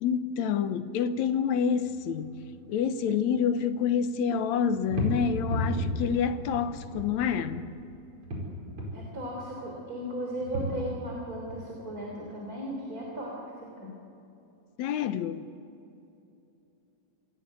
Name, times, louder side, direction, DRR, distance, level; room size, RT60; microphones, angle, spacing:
voice 1, 0.0-2.3 2.7-7.7 14.8-15.5, left 7 dB, 70° left, 2.1 m, -28 dB
sound 1, 1.6-3.0 3.3-4.1 4.5-7.7 8.0-9.1 10.0-11.1 11.5-11.6, equal, 45° right, 5.9 m, -34 dB
voice 2, 8.9-13.4 13.6-13.9, right 1 dB, 30° right, 3.6 m, -36 dB
28.0 x 16.0 x 8.2 m
omnidirectional pair, 3.5 m